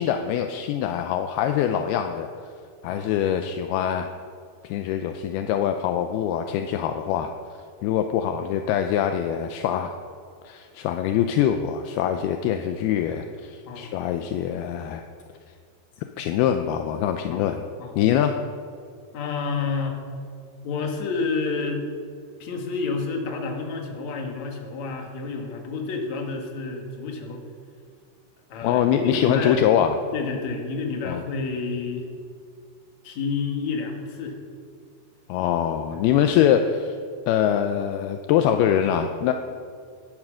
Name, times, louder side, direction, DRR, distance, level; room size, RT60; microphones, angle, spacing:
voice 1, 0.0-2.3 2.8-4.1 4.6-7.3 7.8-10.0 10.4-15.0 16.2-17.6 18.0-18.4 28.6-30.0 31.0-31.2 35.3-37.0 37.3-39.3, left 9 dB, 80° left, 6 dB, 2.4 m, -23 dB
voice 2, 19.1-20.0 20.6-21.8 22.4-27.4 28.5-29.6 30.1-32.0 33.0-34.4, left 4 dB, 50° left, 2 dB, 2.7 m, -29 dB
16.5 x 11.0 x 6.3 m, 2.2 s
omnidirectional pair, 4.8 m